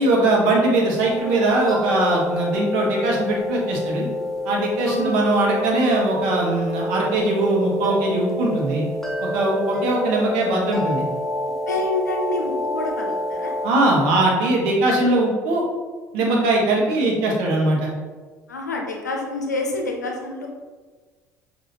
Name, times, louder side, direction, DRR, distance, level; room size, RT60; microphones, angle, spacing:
voice 1, 0.0-4.1 4.4-8.8 9.2-11.0 13.6-15.6 16.1-17.9, right 2 dB, 60° right, -2 dB, 1.1 m, -20 dB
sound 1, 1.0-13.7, equal, 5° left, 0.7 m, -28 dB
voice 2, 4.7-5.1 11.7-13.5 18.5-20.5, left 2 dB, 80° left, 1 dB, 0.6 m, -27 dB
6.2 x 2.8 x 2.8 m, 1.4 s
figure-of-eight pair, 60°, 9 cm